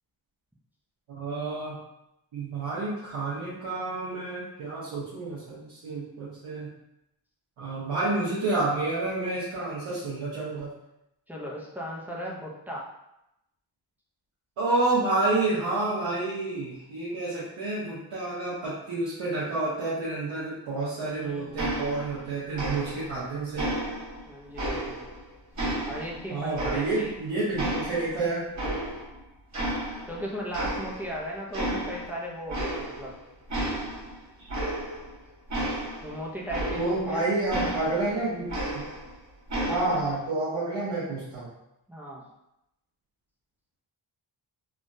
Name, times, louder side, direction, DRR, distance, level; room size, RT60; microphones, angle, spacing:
voice 1, 1.1-1.8 2.3-6.7 7.6-10.7 14.6-23.6 26.3-28.4 34.4-34.5 36.7-38.8 39.7-41.5, right 2 dB, 75° right, -10 dB, 1.1 m, -29 dB
voice 2, 11.3-12.8 21.0-21.9 24.3-25.1 25.9-27.1 30.1-33.1 36.0-37.4 41.9-42.2, equal, 5° right, -4 dB, 0.5 m, -37 dB
sound 1, 21.6-22.3 22.5-23.2 23.6-25.2 25.6-27.2 27.6-29.2 29.5-30.2 30.5-31.2 31.5-32.1 32.5-33.1 33.5-37.1 37.5-39.1 39.5-40.1, right 1 dB, 40° right, 1.1 m, -32 dB
3.5 x 2.3 x 2.6 m, 0.86 s
wide cardioid pair, 120°, 45 cm